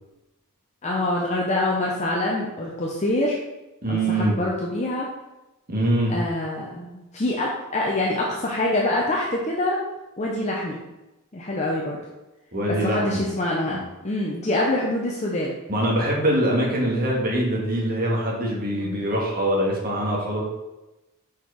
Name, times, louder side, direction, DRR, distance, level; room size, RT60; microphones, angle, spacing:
voice 1, 0.8-3.4 3.9-5.1 6.1-9.8 10.2-10.8 11.3-12.0 12.8-15.5 18.7-19.0, left 1 dB, 30° left, -3 dB, 0.8 m, -25 dB
voice 2, 3.8-4.4 5.7-6.2 12.5-13.2 13.7-13.9 15.7-20.4, right 1 dB, 40° right, -2 dB, 1.7 m, -23 dB
5.7 x 4.5 x 4.8 m, 1.0 s
head